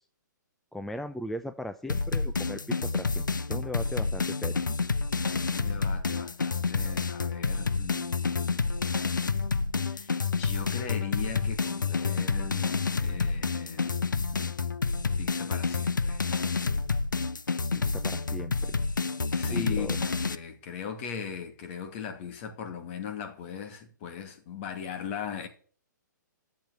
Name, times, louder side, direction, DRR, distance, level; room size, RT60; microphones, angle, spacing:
voice 1, 0.7-4.6 17.7-18.7 19.4-20.0, left 1 dB, ahead, 0.5 m, -38 dB
sound 1, 1.9-20.4, left 4 dB, 80° left, 0.8 m, -29 dB
voice 2, 5.3-8.7 9.8-14.0 14.3-14.5 15.2-16.3 19.3-25.5, left 7 dB, 40° left, 2.4 m, -39 dB
11.5 x 7.5 x 8.2 m
figure-of-eight pair, 125°, 10 cm